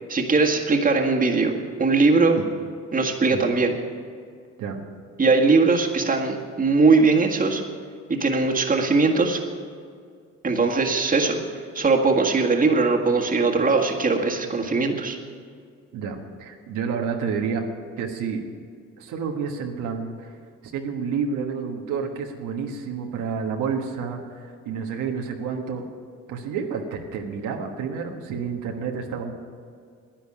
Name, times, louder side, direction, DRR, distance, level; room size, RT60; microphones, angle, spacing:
voice 1, 0.1-1.5 1.8-2.4 2.9-3.8 5.2-7.6 8.2-9.4 10.4-11.4 11.8-15.2, right 4 dB, 30° right, 1 dB, 1.8 m, -20 dB
voice 2, 15.9-17.6 18.0-18.4 19.0-20.4 20.6-25.8 26.3-29.3, right 6 dB, 90° right, 2 dB, 1.4 m, -29 dB
10.5 x 10.5 x 8.7 m, 2.1 s
cardioid pair, 90°, 30 cm